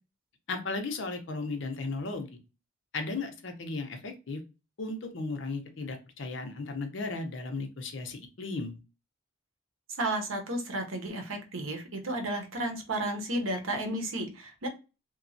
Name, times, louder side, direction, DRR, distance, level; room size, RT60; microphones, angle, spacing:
voice 1, 0.5-2.3 2.9-4.4 4.8-8.8, left 3 dB, 65° left, 6 dB, 0.6 m, -35 dB
voice 2, 10.0-14.7, right 1 dB, 90° right, 5 dB, 0.8 m, -33 dB
2.9 x 2.3 x 2.6 m, 0.29 s
head